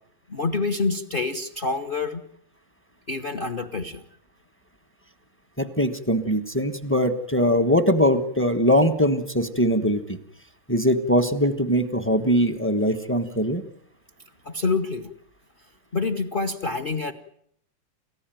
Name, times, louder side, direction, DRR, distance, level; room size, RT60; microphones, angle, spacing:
voice 1, 0.3-2.2 3.1-4.0 14.4-15.1 15.9-17.1, left 3 dB, 35° left, 9 dB, 1.0 m, -27 dB
voice 2, 5.6-10.2 10.7-13.6, equal, 10° left, 10 dB, 0.9 m, -21 dB
29.5 x 15.0 x 9.2 m, 0.72 s
omnidirectional pair, 2.4 m